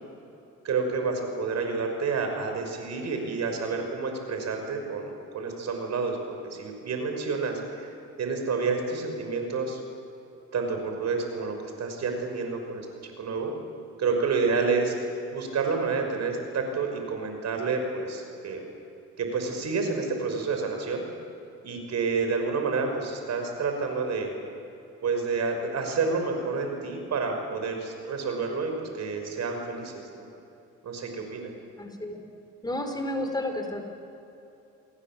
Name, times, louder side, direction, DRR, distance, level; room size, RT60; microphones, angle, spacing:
voice 1, 0.6-7.9 8.2-9.8 10.5-13.5 14.0-15.0 15.3-18.7 19.2-21.0 21.6-24.3 25.0-30.3 30.8-31.5, right 4 dB, 60° right, 4 dB, 5.8 m, -29 dB
voice 2, 31.8-32.2 32.6-33.8, left 1 dB, 15° left, 4 dB, 4.4 m, -31 dB
28.5 x 22.0 x 7.6 m, 2.9 s
cardioid pair, 90°, 30 cm